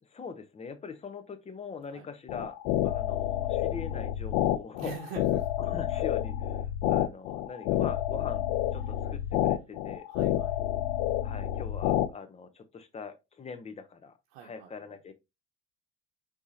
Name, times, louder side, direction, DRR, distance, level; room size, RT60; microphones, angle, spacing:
voice 1, 0.0-2.6 2.8-4.9 5.6-10.1 11.2-14.1 14.4-15.1, left 5 dB, 20° left, 0.7 m, -42 dB
sound 1, 2.3-12.1, left 12 dB, 80° left, 0.6 m, -29 dB
voice 2, 4.8-5.6 10.1-10.6 14.3-14.7, right 8 dB, 90° right, 1.0 m, -44 dB
4.8 x 3.5 x 2.8 m
cardioid pair, 120°, 35 cm